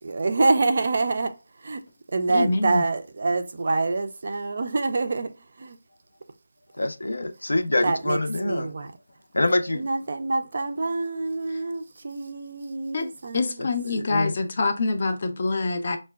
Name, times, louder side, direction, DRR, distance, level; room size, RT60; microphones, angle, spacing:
voice 1, 0.0-1.8 2.1-5.8 7.5-8.9 9.7-13.6, right 3 dB, 35° right, 0.3 m, -26 dB
voice 2, 2.3-2.8 12.9-13.1 13.3-16.0, left 3 dB, 30° left, 0.4 m, -25 dB
voice 3, 6.8-8.7 9.3-9.9 13.6-13.7 13.9-14.3, left 2 dB, 85° left, 0.5 m, -25 dB
5.5 x 2.1 x 2.3 m
figure-of-eight pair, 175°, 0 cm